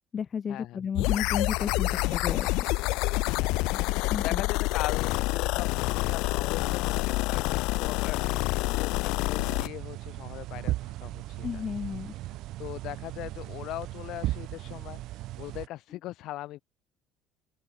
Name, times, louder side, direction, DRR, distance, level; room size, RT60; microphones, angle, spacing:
voice 1, 0.1-2.5 3.7-3.8 4.1-4.4 11.4-12.1, left 7 dB, 30° left, 0.6 m, -33 dB
sound 1, 1.0-9.7, left 22 dB, 85° left, 0.7 m, -27 dB
voice 2, 3.3-11.6 12.6-16.6, left 16 dB, 65° left, 1.9 m, -40 dB
sound 2, 9.4-15.7, right 16 dB, 65° right, 0.4 m, -37 dB
cardioid pair, 150°, 0 cm